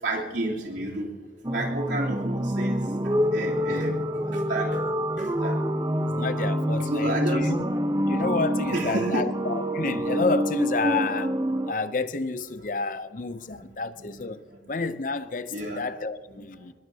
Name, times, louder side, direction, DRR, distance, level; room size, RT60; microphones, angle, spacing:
voice 1, 0.0-1.1 1.5-2.9 3.3-5.6 6.9-7.5 8.7-9.3 13.5-13.6 14.0-14.1 15.5-15.8, right 2 dB, 80° right, 3.2 m, -31 dB
sound 1, 1.4-11.7, equal, 25° right, 0.8 m, -27 dB
voice 2, 6.0-7.6 8.1-11.3 11.7-14.4 14.7-16.7, left 3 dB, 45° left, 0.6 m, -30 dB
24.0 x 21.0 x 2.8 m
head